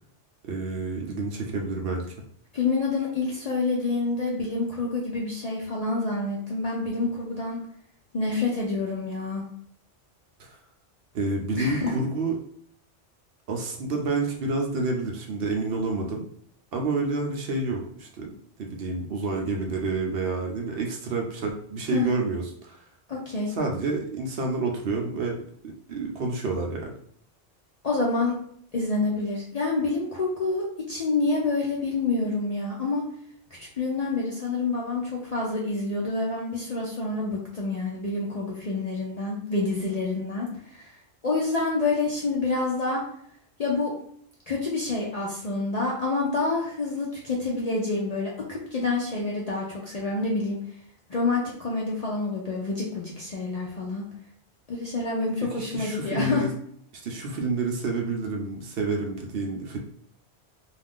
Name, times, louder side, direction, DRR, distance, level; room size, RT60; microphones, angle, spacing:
voice 1, 0.4-2.1 10.4-10.5 11.1-12.4 13.5-16.2 16.7-22.8 23.5-25.4 25.9-26.9 55.5-56.5 57.0-59.8, right 3 dB, 65° right, 1 dB, 0.7 m, -29 dB
voice 2, 2.5-7.6 8.1-9.5 11.5-11.9 21.9-22.1 23.1-23.5 27.8-28.3 28.7-33.0 33.6-40.9 41.2-43.0 43.6-43.9 44.5-50.6 51.1-54.0 54.7-56.4, left 3 dB, 50° left, -4 dB, 0.5 m, -27 dB
2.4 x 2.4 x 3.5 m, 0.65 s
omnidirectional pair, 1.2 m